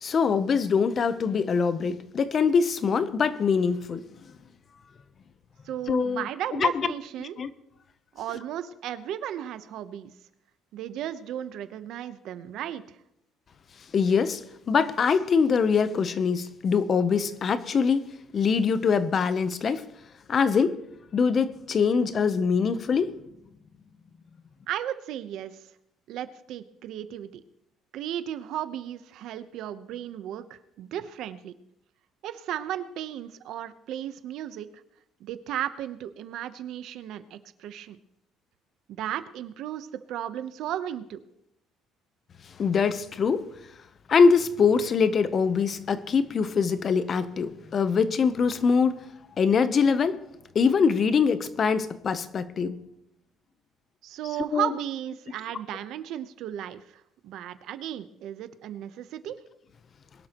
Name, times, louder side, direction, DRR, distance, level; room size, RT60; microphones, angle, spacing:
voice 1, 0.0-4.0 5.9-6.2 6.5-6.9 7.2-7.5 13.9-14.4 14.7-18.1 18.3-19.9 20.3-20.8 21.1-23.1 42.6-43.5 44.1-49.0 49.4-50.2 50.5-52.8 54.5-54.7, left 5 dB, 35° left, 0.7 m, -23 dB
voice 2, 5.6-7.4 8.1-10.1 10.7-13.0 24.7-25.5 26.1-27.4 27.9-31.5 32.2-34.7 35.2-38.0 38.9-41.2 54.0-56.8 57.2-59.4, right 11 dB, 65° right, 0.8 m, -35 dB
22.0 x 12.0 x 3.0 m
cardioid pair, 155°, 0 cm